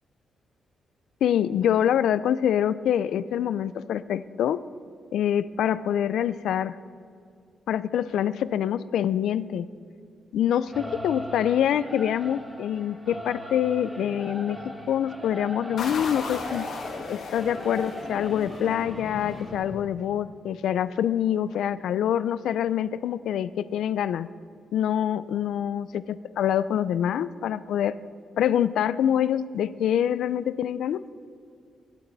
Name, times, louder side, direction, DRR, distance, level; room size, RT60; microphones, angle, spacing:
voice 1, 1.2-4.6 5.1-6.8 7.7-9.7 10.3-16.7 17.1-24.3 24.7-28.0 28.4-31.0, left 10 dB, 80° left, 16 dB, 0.4 m, -25 dB
Singing / Musical instrument, 10.7-19.6, equal, 10° right, 2.2 m, -39 dB
sound 1, 15.8-20.3, left 4 dB, 65° left, 1.9 m, -36 dB
27.5 x 12.0 x 4.0 m, 2.3 s
wide cardioid pair, 170°, 0 cm